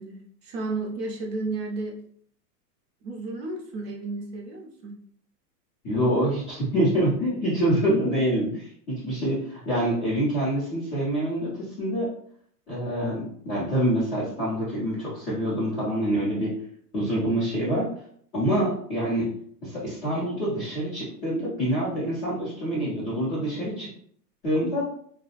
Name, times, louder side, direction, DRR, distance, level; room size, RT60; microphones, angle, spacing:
voice 1, 0.0-1.9 3.0-5.0, right 3 dB, 40° right, 0 dB, 0.5 m, -33 dB
voice 2, 5.8-12.1 12.7-16.5 16.9-17.9 18.3-19.3 19.6-23.9 24.4-24.9, right 1 dB, 15° left, -11 dB, 0.4 m, -26 dB
2.6 x 2.0 x 2.8 m, 0.62 s
hypercardioid pair, 140°, 48 cm